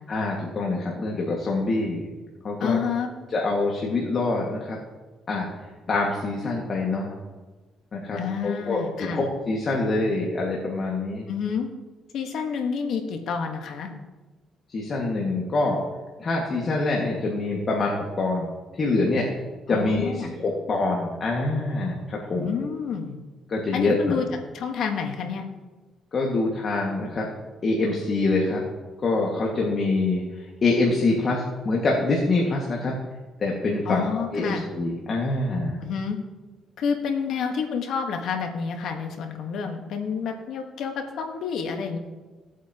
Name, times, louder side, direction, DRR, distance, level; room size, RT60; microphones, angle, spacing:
voice 1, 0.1-2.1 2.4-2.8 3.3-4.8 5.3-5.5 5.9-7.1 7.9-11.3 14.7-15.8 16.2-19.3 19.7-22.5 23.5-24.2 26.1-27.3 27.6-28.6 29.0-32.9 33.4-35.8, left 2 dB, 45° left, -2 dB, 1.9 m, -25 dB
voice 2, 2.6-3.1 8.1-9.2 11.3-11.7 12.1-13.9 19.7-20.3 22.3-23.2 23.7-24.2 24.5-25.5 33.8-34.7 35.8-36.2 36.8-42.0, left 6 dB, 75° left, 4 dB, 1.5 m, -29 dB
17.5 x 8.3 x 3.0 m, 1.3 s
cardioid pair, 90°, 0 cm